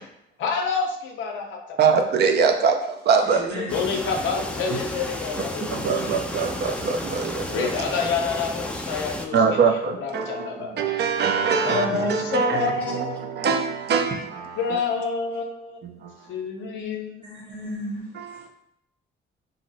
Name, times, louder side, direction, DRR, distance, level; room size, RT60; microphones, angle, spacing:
voice 1, 0.4-2.1 3.5-5.7 6.0-6.2 7.5-10.8 11.6-13.5 14.6-15.8 16.3-17.4, left 5 dB, 75° left, 0.5 m, -28 dB
voice 2, 1.8-3.5 5.7-7.7 9.3-10.5 10.8-12.6 13.4-14.1 18.2-18.5, right 5 dB, 55° right, 0.5 m, -22 dB
voice 3, 3.2-3.8 14.1-14.2 17.2-18.0, right 1 dB, 20° right, 0.9 m, -34 dB
sound 1, 3.7-9.3, left 1 dB, 5° left, 0.3 m, -32 dB
2.6 x 2.0 x 3.9 m
cardioid pair, 90°, 20 cm